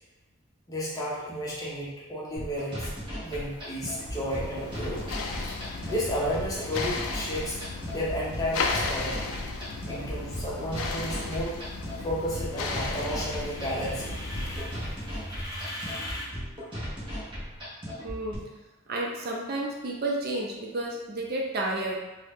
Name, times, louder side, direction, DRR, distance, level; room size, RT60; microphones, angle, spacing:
voice 1, 0.7-2.9 3.2-5.2 5.5-7.6 7.9-9.3 9.8-11.5 12.0-16.2, equal, 15° left, -6 dB, 0.6 m, -33 dB
sound 1, 2.4-18.4, equal, 25° right, 0.8 m, -37 dB
sound 2, 3.4-14.9, left 4 dB, 85° left, 0.3 m, -35 dB
voice 2, 18.0-18.4 18.9-22.0, right 2 dB, 50° right, -1 dB, 0.4 m, -31 dB
2.7 x 2.0 x 3.4 m, 1.1 s
head